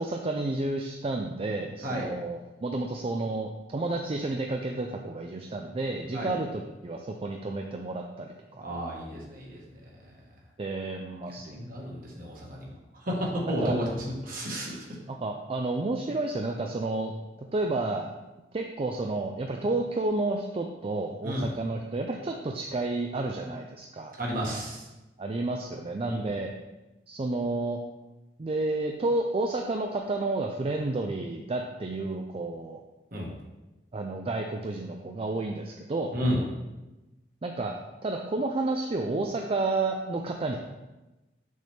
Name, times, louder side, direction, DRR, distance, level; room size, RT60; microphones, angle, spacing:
voice 1, 0.0-8.6 10.6-11.6 13.6-13.8 15.1-17.1 17.5-18.1 18.5-24.1 25.2-26.5 27.1-27.8 28.4-32.8 33.9-36.1 37.4-37.7 38.0-40.6, right 2 dB, 35° right, 2 dB, 0.4 m, -31 dB
voice 2, 8.6-9.6 9.9-10.1 11.4-12.7 13.0-14.9 21.2-21.5 24.2-24.9 26.0-26.3 33.1-33.3 36.1-36.4, equal, 55° right, -3 dB, 1.7 m, -32 dB
6.3 x 5.7 x 3.5 m, 1.0 s
head